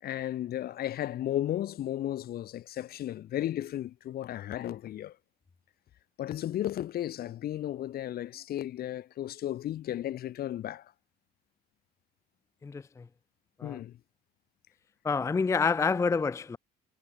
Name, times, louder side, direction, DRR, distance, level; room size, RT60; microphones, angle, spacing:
voice 1, 0.0-5.2 6.2-10.9 13.6-14.0, left 12 dB, 65° left, 6.0 m, -34 dB
voice 2, 12.6-13.0 13.6-13.8 15.0-16.6, left 5 dB, 15° left, 0.5 m, -28 dB
cardioid pair, 110°, 17 cm